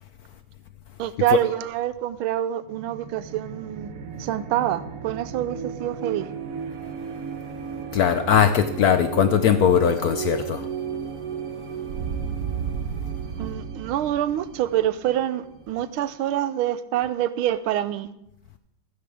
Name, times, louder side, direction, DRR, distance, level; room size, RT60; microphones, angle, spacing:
voice 1, 1.0-3.9 4.2-6.3 13.4-18.1, right 12 dB, 85° right, 1.5 m, -26 dB
sound 1, 2.6-16.1, right 7 dB, 55° right, 1.1 m, -34 dB
voice 2, 7.9-10.7, left 8 dB, 75° left, 0.8 m, -20 dB
15.0 x 13.0 x 3.5 m
omnidirectional pair, 2.3 m